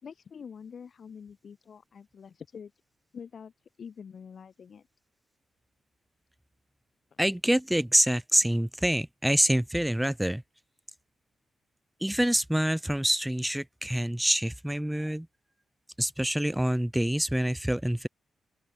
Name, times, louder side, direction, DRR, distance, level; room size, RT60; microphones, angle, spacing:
voice 1, 0.0-2.7 3.1-3.5 3.8-4.9 7.1-7.2, left 6 dB, 40° left, 4.4 m, -45 dB
voice 2, 7.2-10.4 12.0-15.3 16.0-18.1, right 1 dB, 5° right, 0.4 m, -26 dB
open air
wide cardioid pair, 170°, 0 cm